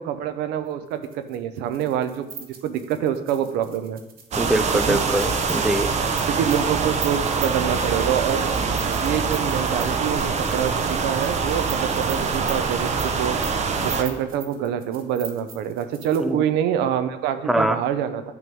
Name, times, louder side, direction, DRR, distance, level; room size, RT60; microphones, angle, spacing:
voice 1, 0.0-4.0 4.9-5.0 6.3-18.2, right 9 dB, 90° right, 10 dB, 0.6 m, -26 dB
sound 1, 0.9-16.3, right 6 dB, 60° right, 1.2 m, -40 dB
sound 2, 4.3-14.0, right 5 dB, 40° right, 0.7 m, -24 dB
voice 2, 4.4-5.9 16.2-16.4 17.5-17.8, right 1 dB, ahead, 9 dB, 0.4 m, -23 dB
9.2 x 3.1 x 5.3 m, 0.97 s
cardioid pair, 105°, 17 cm